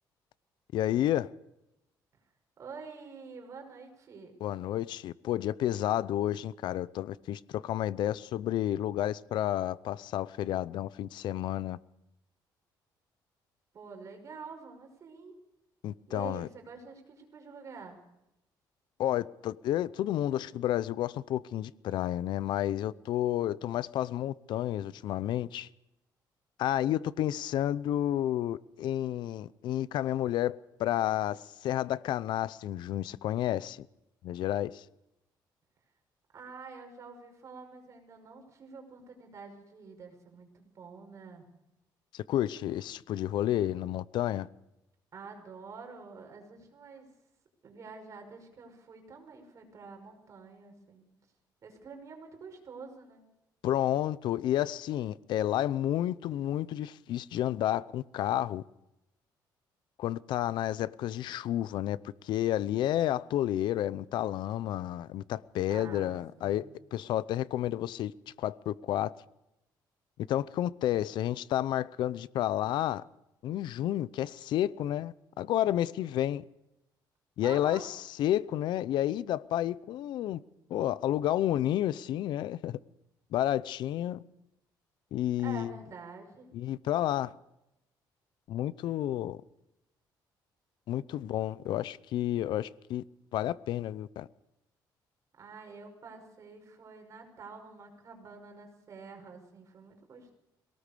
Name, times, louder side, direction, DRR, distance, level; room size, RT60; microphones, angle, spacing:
voice 1, 0.7-1.3 4.4-11.8 15.8-16.5 19.0-25.7 26.6-33.8 34.2-34.8 42.1-44.5 53.6-58.6 60.0-62.0 62.2-68.1 68.4-69.1 70.3-73.0 73.4-76.4 77.4-80.4 80.7-82.8 83.3-84.2 85.1-85.7 86.5-87.3 88.5-89.4 90.9-93.0 93.3-94.3, left 12 dB, 70° left, 0.6 m, -31 dB
voice 2, 2.6-4.3 13.7-15.4 16.1-18.0 36.3-41.5 45.1-47.1 47.6-51.1 51.6-53.2 65.7-66.7 77.4-77.9 85.4-86.5 95.4-100.4, right 5 dB, 40° right, 5.6 m, -47 dB
22.5 x 18.5 x 6.8 m
cardioid pair, 145°, 8 cm